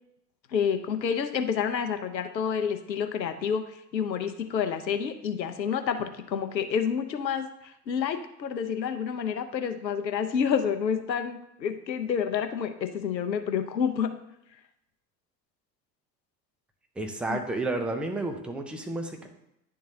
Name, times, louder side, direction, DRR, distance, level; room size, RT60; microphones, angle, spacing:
voice 1, 0.5-3.6 3.9-7.5 7.9-14.1 17.3-17.4, left 7 dB, 85° left, 8 dB, 0.7 m, -29 dB
voice 2, 17.0-19.3, right 2 dB, ahead, 4 dB, 0.5 m, -31 dB
10.5 x 3.7 x 2.7 m, 0.82 s
figure-of-eight pair, 75°, 50 cm